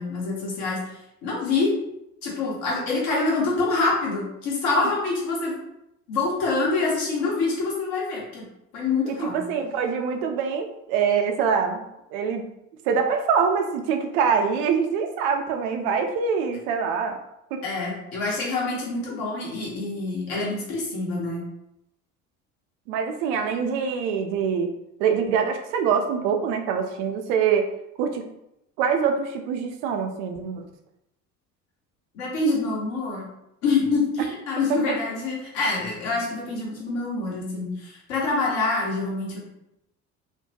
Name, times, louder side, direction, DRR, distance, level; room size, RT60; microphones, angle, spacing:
voice 1, 0.0-1.8 2.2-5.5 6.1-8.4 8.7-9.5 17.6-21.5 32.1-33.3 33.6-39.5, left 3 dB, 60° left, -4 dB, 1.2 m, -26 dB
voice 2, 9.1-11.9 12.1-12.5 12.9-17.2 17.5-17.6 22.9-24.7 25.0-27.7 28.0-28.3 28.8-30.6, right 6 dB, 60° right, 4 dB, 0.5 m, -24 dB
2.5 x 2.1 x 2.8 m, 0.83 s
figure-of-eight pair, 60°, 41 cm